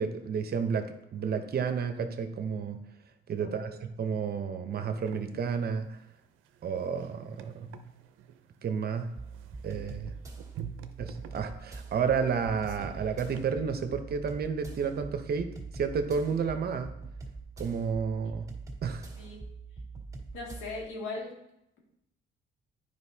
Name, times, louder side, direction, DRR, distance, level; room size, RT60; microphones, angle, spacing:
voice 1, 0.0-2.8 3.3-6.0 6.6-7.7 8.6-9.1 9.6-10.1 11.0-16.9 17.6-18.5 18.8-19.1, right 6 dB, 50° right, 8 dB, 0.8 m, -31 dB
voice 2, 3.4-3.9 19.2-19.4 20.3-21.3, left 3 dB, 90° left, -2 dB, 1.9 m, -39 dB
sound 1, 4.9-13.4, right 10 dB, 90° right, 0.5 m, -48 dB
sound 2, 9.2-20.9, right 4 dB, 15° right, 1.9 m, -43 dB
9.5 x 5.1 x 2.8 m, 0.84 s
cardioid pair, 90°, 20 cm